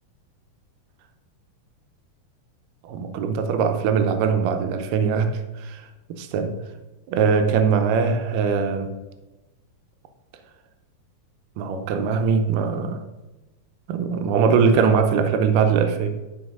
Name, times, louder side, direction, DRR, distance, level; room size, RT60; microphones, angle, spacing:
voice 1, 2.8-5.8 6.1-6.5 7.1-8.9 11.6-13.0 13.9-16.2, right 6 dB, 80° right, 7 dB, 2.4 m, -21 dB
12.5 x 4.3 x 5.4 m, 1.1 s
omnidirectional pair, 3.9 m